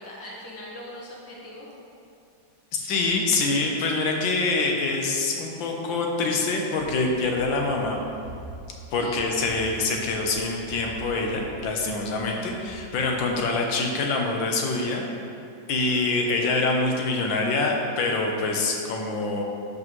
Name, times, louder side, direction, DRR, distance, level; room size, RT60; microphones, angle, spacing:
voice 1, 0.0-1.7 9.0-9.3 10.0-10.5, left 1 dB, 15° right, -5 dB, 0.6 m, -41 dB
voice 2, 2.7-8.0 8.9-15.0 15.7-19.4, left 3 dB, 80° left, 1 dB, 1.6 m, -25 dB
Run, 6.7-13.7, right 2 dB, 80° right, 1.6 m, -45 dB
11.0 x 5.3 x 3.1 m, 2.5 s
omnidirectional pair, 2.1 m